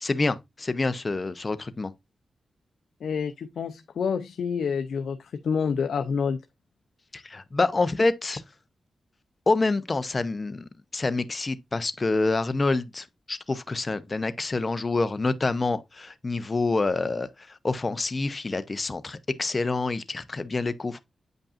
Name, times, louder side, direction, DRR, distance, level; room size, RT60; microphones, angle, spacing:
voice 1, 0.0-1.9 7.1-8.4 9.5-21.0, left 3 dB, 35° left, 0.7 m, -27 dB
voice 2, 3.0-6.4, left 6 dB, 75° left, 0.5 m, -28 dB
8.5 x 5.3 x 2.5 m
cardioid pair, 70°, 0 cm